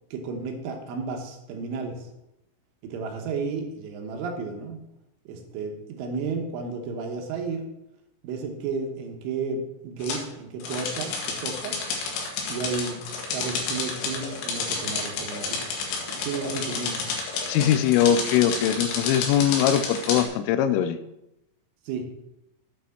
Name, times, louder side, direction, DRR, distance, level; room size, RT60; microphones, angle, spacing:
voice 1, 0.0-2.1 2.8-4.8 5.3-7.6 8.2-11.8 12.5-15.7 16.0-17.0 21.9-22.1, right 4 dB, 75° right, 3 dB, 3.3 m, -33 dB
sound 1, 10.0-10.2 10.6-20.3, left 4 dB, 70° left, 3.3 m, -30 dB
voice 2, 17.5-21.0, left 10 dB, 85° left, 11 dB, 3.1 m, -21 dB
8.2 x 6.0 x 5.7 m, 0.88 s
omnidirectional pair, 5.9 m